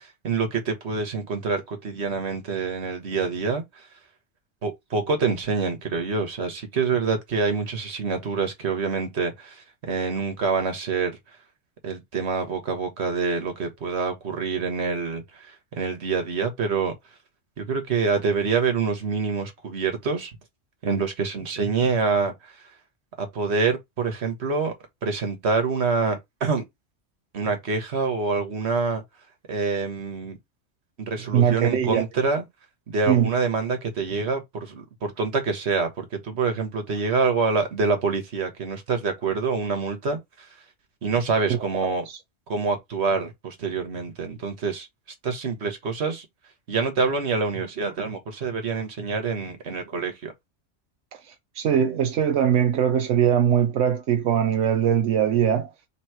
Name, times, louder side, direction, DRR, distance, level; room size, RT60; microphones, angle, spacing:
voice 1, 0.0-3.9 4.6-11.2 11.8-16.9 17.6-20.4 20.8-22.6 23.2-24.7 25.0-26.6 27.3-29.0 29.5-30.4 31.0-32.4 32.9-40.6 41.0-42.0 42.5-44.9 45.2-46.2 46.7-50.3, right 4 dB, 65° right, 1.5 m, -26 dB
voice 2, 31.3-32.0 33.1-33.3 42.1-42.2 51.3-55.7, right 9 dB, 85° right, 1.0 m, -21 dB
3.5 x 3.1 x 4.6 m
omnidirectional pair, 1.2 m